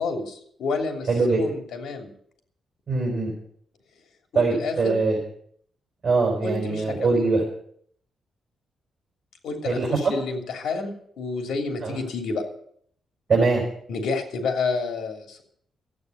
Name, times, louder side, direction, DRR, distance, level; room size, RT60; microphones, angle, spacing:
voice 1, 0.0-2.1 4.3-4.9 6.4-7.1 9.4-12.4 13.9-15.4, left 4 dB, 80° left, 4 dB, 3.0 m, -29 dB
voice 2, 1.1-1.4 2.9-3.3 4.3-5.2 6.0-7.4 9.6-10.1 11.8-12.0 13.3-13.6, right 3 dB, 40° right, -2 dB, 5.0 m, -22 dB
14.0 x 9.0 x 8.0 m, 0.64 s
cardioid pair, 120°, 0 cm